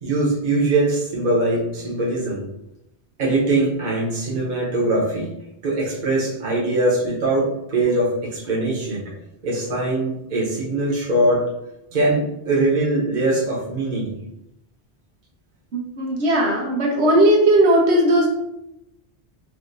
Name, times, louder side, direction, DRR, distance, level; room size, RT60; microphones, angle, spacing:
voice 1, 0.0-2.4 3.2-5.3 5.6-9.0 9.4-11.4 11.9-14.1, right 2 dB, 45° right, -5 dB, 1.1 m, -22 dB
voice 2, 15.7-18.3, right 1 dB, 85° right, -1 dB, 1.1 m, -17 dB
4.5 x 2.7 x 2.6 m, 0.86 s
omnidirectional pair, 1.1 m